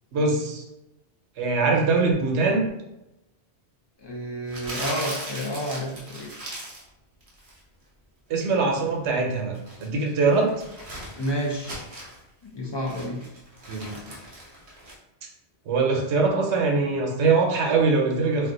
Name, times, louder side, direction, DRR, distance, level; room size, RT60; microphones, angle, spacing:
voice 1, 0.1-0.6 1.4-2.7 8.3-10.5 13.7-14.0 15.7-18.5, right 4 dB, 85° right, 1 dB, 0.9 m, -22 dB
voice 2, 4.0-6.3 11.1-11.9 12.4-13.2, equal, 35° left, -2 dB, 0.4 m, -30 dB
Crumpling crinkling, 4.5-6.9 7.2-7.6 9.3-12.2 12.6-15.0, right 1 dB, 35° right, 0.7 m, -38 dB
2.5 x 2.2 x 3.7 m, 0.90 s
omnidirectional pair, 1.1 m